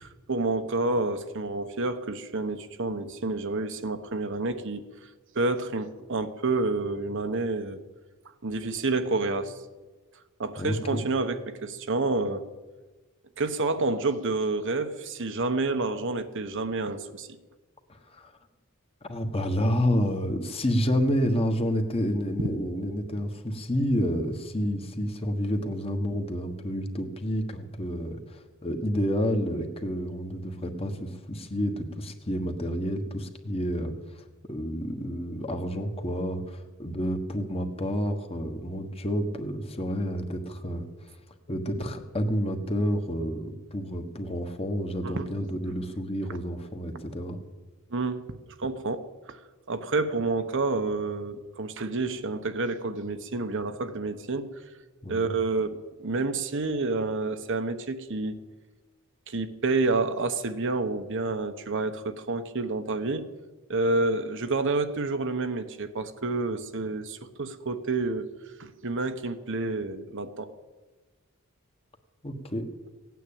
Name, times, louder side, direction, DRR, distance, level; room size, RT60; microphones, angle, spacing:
voice 1, 0.0-4.8 5.3-7.8 8.4-9.5 10.4-12.4 13.4-17.3 45.0-45.2 47.9-48.2 48.6-49.4 49.7-54.5 55.1-58.4 59.3-63.2 63.7-68.3 68.6-70.5, right 3 dB, 60° right, 8 dB, 1.0 m, -29 dB
voice 2, 10.6-11.0 17.9-18.3 19.0-40.9 41.5-47.4 55.0-55.3 72.2-72.7, equal, 25° left, 6 dB, 1.4 m, -29 dB
17.0 x 9.4 x 8.6 m, 1.3 s
head